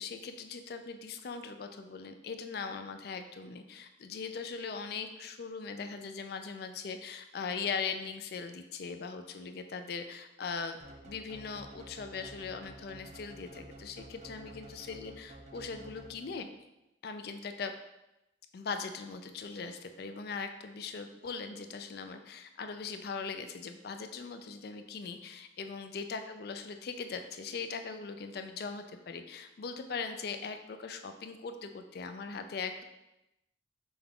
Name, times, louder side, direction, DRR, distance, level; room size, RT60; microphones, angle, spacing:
voice 1, 0.0-10.8 11.0-16.5 17.0-17.7 18.5-32.8, left 5 dB, 55° left, 7 dB, 0.3 m, -40 dB
sound 1, 10.8-16.6, right 1 dB, 35° right, 0.5 m, -51 dB
5.3 x 2.3 x 3.7 m, 0.93 s
head